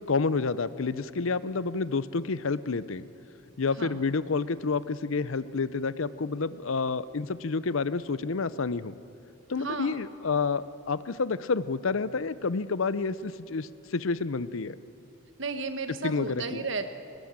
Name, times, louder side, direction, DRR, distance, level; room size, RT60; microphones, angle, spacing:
voice 1, 0.0-3.1 3.6-9.0 9.5-14.8 16.0-16.6, left 4 dB, 70° left, 16 dB, 0.6 m, -29 dB
voice 2, 9.6-10.0 15.4-16.9, right 3 dB, 60° right, 8 dB, 1.5 m, -34 dB
22.5 x 20.0 x 8.9 m, 2.8 s
head